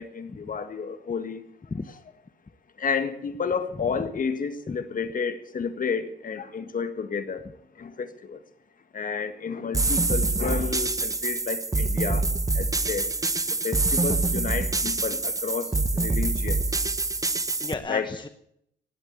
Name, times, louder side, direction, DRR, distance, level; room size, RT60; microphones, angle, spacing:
voice 1, 0.0-1.4 2.8-7.5 7.7-8.4 8.9-12.3 12.5-13.1 13.6-16.9 17.9-18.1, left 5 dB, 45° left, 10 dB, 1.7 m, -31 dB
sound 1, 9.7-17.7, right 3 dB, 15° right, 0.9 m, -25 dB
voice 2, 17.1-18.3, left 4 dB, 25° left, 8 dB, 0.9 m, -34 dB
19.0 x 8.0 x 8.2 m, 0.73 s
cardioid pair, 90°, 20 cm